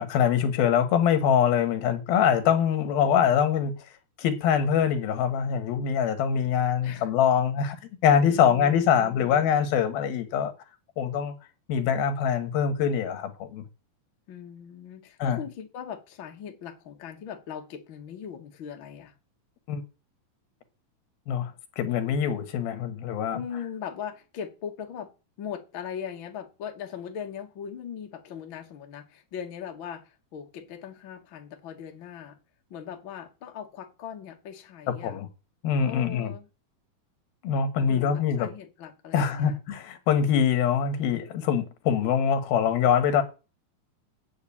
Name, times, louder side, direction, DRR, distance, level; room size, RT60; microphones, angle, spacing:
voice 1, 0.0-3.7 4.2-7.8 8.0-10.5 11.0-11.3 11.7-13.6 15.2-15.4 19.7-19.8 21.3-23.4 35.0-35.3 35.6-36.3 37.4-38.5 39.1-43.2, left 8 dB, 90° left, 3.4 m, -24 dB
voice 2, 8.3-9.5 14.3-19.1 23.3-25.1 25.4-32.4 32.7-35.2 35.9-36.5 37.9-39.6, left 8 dB, 45° left, 1.8 m, -39 dB
9.3 x 6.4 x 8.6 m
omnidirectional pair, 4.1 m